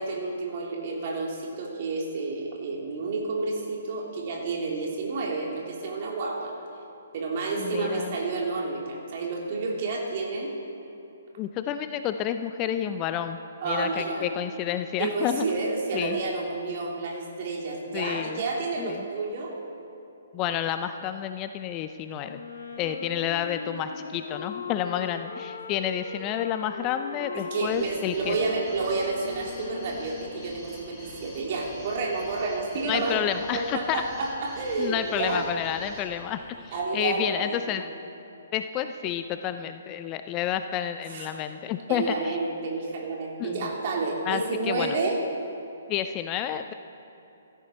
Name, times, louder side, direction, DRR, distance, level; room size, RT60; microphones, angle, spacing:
voice 1, 0.0-6.5 7.1-10.6 13.6-14.3 15.0-19.6 23.7-23.9 27.5-33.2 33.5-35.4 36.7-37.8 41.1-41.4 41.9-45.2, right 3 dB, 45° right, -2 dB, 3.2 m, -30 dB
voice 2, 7.6-8.1 11.4-13.4 13.6-15.4 15.9-16.2 17.9-18.4 18.8-19.0 20.3-22.4 22.8-28.4 32.8-34.0 34.8-37.9 38.5-42.4 43.4-43.6 44.3-45.0 45.9-46.7, left 10 dB, 25° left, 9 dB, 0.5 m, -30 dB
Wind instrument woodwind instrument, 22.2-30.6, left 4 dB, 65° left, 1.5 m, -39 dB
sound 1, 27.6-37.0, left 1 dB, 5° left, 3.8 m, -47 dB
16.0 x 13.5 x 4.4 m, 2.9 s
figure-of-eight pair, 130°, 0 cm